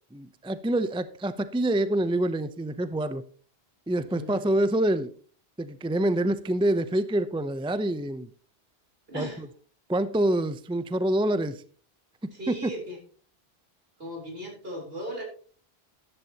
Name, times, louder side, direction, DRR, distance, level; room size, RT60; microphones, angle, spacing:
voice 1, 0.1-3.2 3.9-5.1 5.6-8.3 9.1-9.5 9.9-11.6 12.2-12.7, right 1 dB, 5° right, 12 dB, 0.5 m, -26 dB
voice 2, 4.1-4.5 9.1-9.4 12.3-13.0 14.0-15.2, equal, 65° right, 1 dB, 4.1 m, -37 dB
13.5 x 11.0 x 2.9 m, 0.42 s
omnidirectional pair, 1.1 m